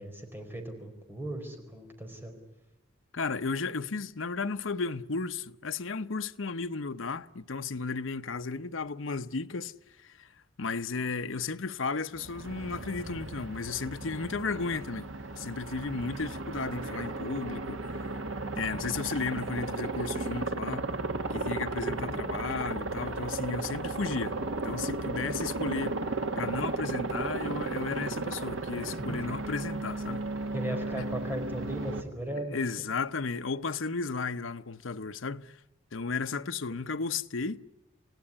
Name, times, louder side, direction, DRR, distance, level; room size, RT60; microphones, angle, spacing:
voice 1, 0.0-2.4 21.8-22.2 29.0-29.4 30.5-32.6, right 1 dB, 10° right, 4.8 m, -37 dB
voice 2, 3.1-9.7 10.0-10.3 10.6-15.1 15.4-18.0 18.6-20.9 21.3-24.4 24.6-26.0 26.4-30.3 31.0-31.1 32.5-35.6 35.9-37.6, left 4 dB, 80° left, 0.8 m, -34 dB
Aircraft, 12.1-32.0, right 2 dB, 85° right, 1.7 m, -35 dB
27.5 x 17.5 x 9.8 m
head